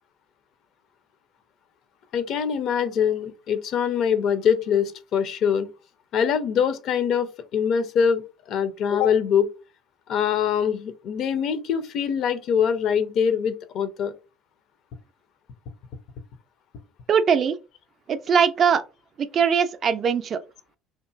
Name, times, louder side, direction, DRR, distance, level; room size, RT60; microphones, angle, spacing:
voice 1, 2.1-5.7 6.1-7.3 7.5-8.2 8.5-9.5 10.1-14.1, left 7 dB, 50° left, 0.4 m, -23 dB
voice 2, 17.1-17.6 18.1-18.8 19.2-20.4, right 7 dB, 40° right, 0.3 m, -21 dB
2.8 x 2.4 x 2.3 m
figure-of-eight pair, 60°, 0 cm